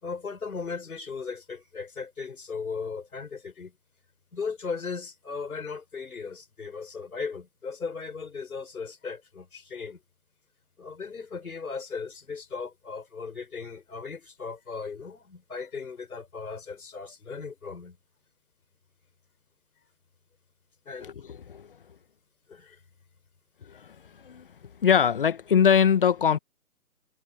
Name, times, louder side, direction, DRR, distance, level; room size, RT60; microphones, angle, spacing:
voice 1, 0.0-3.7 4.3-10.0 10.8-18.0 20.9-21.1 22.5-22.8, left 5 dB, 70° left, 5.4 m, -37 dB
voice 2, 24.8-26.4, left 7 dB, 35° left, 1.1 m, -22 dB
figure-of-eight pair, 155°, 45 cm